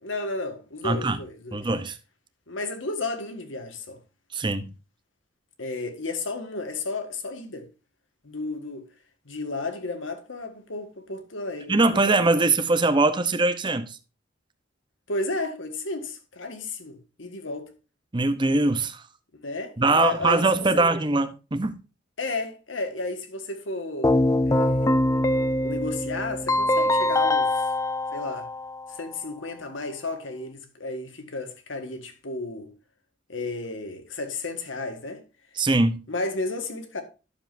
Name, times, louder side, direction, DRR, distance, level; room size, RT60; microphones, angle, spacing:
voice 1, 0.0-1.6 2.5-4.0 5.6-7.7 8.2-8.8 9.3-11.8 15.1-17.7 19.3-20.9 22.2-24.1 24.5-24.9 25.6-27.5 28.1-28.5 28.9-32.7 33.3-35.2 36.1-37.0, left 3 dB, 85° left, 1.7 m, -33 dB
voice 2, 0.8-1.2 1.5-2.0 4.3-4.7 11.7-14.0 18.1-19.0 19.8-21.8 35.6-36.0, right 3 dB, 25° right, 0.7 m, -22 dB
Keyboard (musical), 24.0-29.0, left 1 dB, 15° left, 0.4 m, -23 dB
11.0 x 7.3 x 2.6 m
head